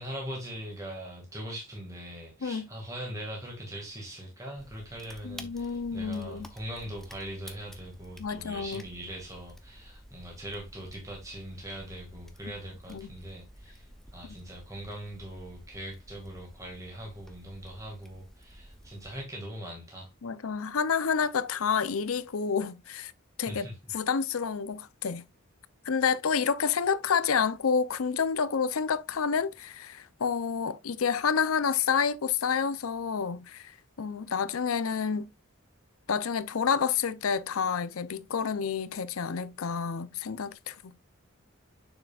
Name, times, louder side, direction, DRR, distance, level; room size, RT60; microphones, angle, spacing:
voice 1, 0.0-20.1 23.5-23.8, right 1 dB, 15° right, 2.0 m, -41 dB
sound 1, 4.6-19.3, equal, ahead, 0.7 m, -51 dB
voice 2, 5.2-6.5 8.2-8.8 12.9-13.1 20.2-23.1 23.4-23.7 23.9-25.2 25.9-35.3 36.1-40.9, left 6 dB, 85° left, 0.6 m, -29 dB
6.7 x 6.6 x 2.4 m
head